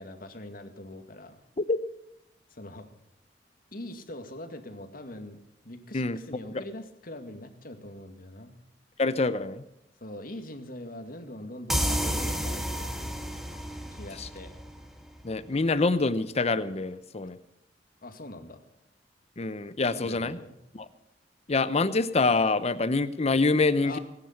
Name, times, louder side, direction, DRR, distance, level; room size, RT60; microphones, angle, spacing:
voice 1, 0.0-1.4 2.5-2.9 3.7-8.6 10.0-12.7 13.9-14.6 18.0-18.6 19.9-20.6 23.8-24.0, left 1 dB, 55° left, 7 dB, 2.1 m, -42 dB
voice 2, 9.0-9.6 14.2-14.3 15.2-17.4 19.4-20.4 20.7-20.8 21.5-24.0, left 3 dB, 35° left, 13 dB, 0.7 m, -26 dB
sound 1, 11.7-15.2, equal, ahead, 1.5 m, -31 dB
19.5 x 9.9 x 5.9 m, 0.86 s
head